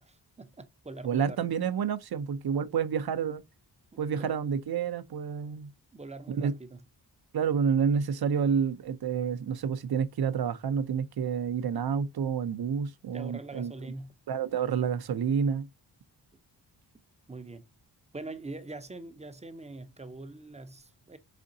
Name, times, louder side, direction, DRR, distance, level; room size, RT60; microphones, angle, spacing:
voice 1, 0.0-1.4 2.6-2.7 3.9-4.3 5.9-6.8 13.1-14.1 17.3-17.7 18.1-21.2, right 2 dB, 15° right, 0.5 m, -43 dB
voice 2, 1.0-3.4 4.0-5.7 6.3-6.6 7.3-13.7 14.3-15.7, right 7 dB, 60° right, 0.6 m, -29 dB
5.0 x 3.6 x 2.6 m
wide cardioid pair, 135°, 43 cm